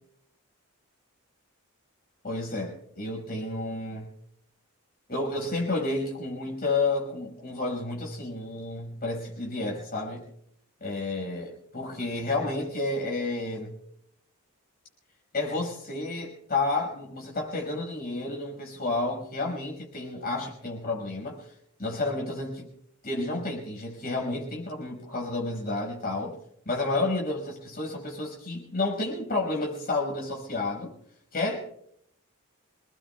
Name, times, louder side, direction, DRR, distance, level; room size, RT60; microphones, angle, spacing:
voice 1, 2.2-4.1 5.1-10.3 10.8-13.8 15.3-21.5 21.8-22.7 23.0-26.4 26.7-30.9 31.3-31.6, left 2 dB, 45° left, 0 dB, 5.3 m, -31 dB
27.5 x 20.0 x 2.3 m, 0.71 s
head